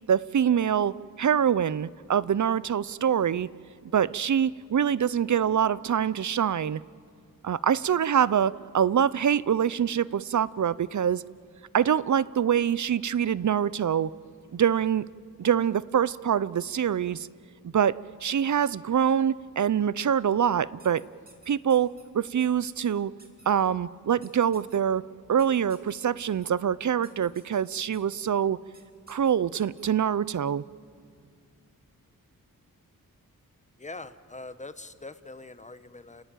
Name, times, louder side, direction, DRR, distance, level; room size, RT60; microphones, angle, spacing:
voice 1, 0.1-3.5 3.9-6.8 7.4-11.2 11.7-14.1 14.5-15.1 15.4-17.3 17.6-21.0 21.5-23.1 23.5-25.0 25.3-28.6 29.1-30.6, right 8 dB, 55° right, 19 dB, 0.5 m, -25 dB
sound 1, 20.8-22.0 22.4-22.9 23.2-23.5 24.2-24.8 25.4-26.5 27.0-27.6 27.9-28.2 28.7-28.8 29.1-29.8, right 2 dB, 25° right, 3.0 m, -54 dB
voice 2, 33.8-36.2, left 2 dB, 20° left, 12 dB, 1.0 m, -43 dB
30.0 x 17.0 x 9.0 m, 2.4 s
wide cardioid pair, 110°, 35 cm